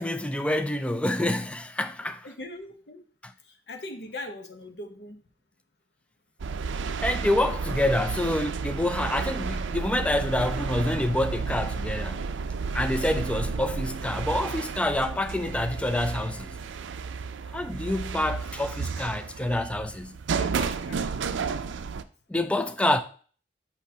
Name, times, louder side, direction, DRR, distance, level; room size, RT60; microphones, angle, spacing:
voice 1, 0.0-2.3 7.0-12.2 12.7-16.5 17.5-20.1 22.3-23.0, left 1 dB, 5° left, 0.3 m, -27 dB
voice 2, 2.2-3.0 3.4-5.2 20.4-21.1, left 1 dB, 60° left, 0.9 m, -40 dB
sound 1, 6.4-22.0, right 5 dB, 90° right, 0.4 m, -32 dB
6.2 x 5.7 x 2.8 m
head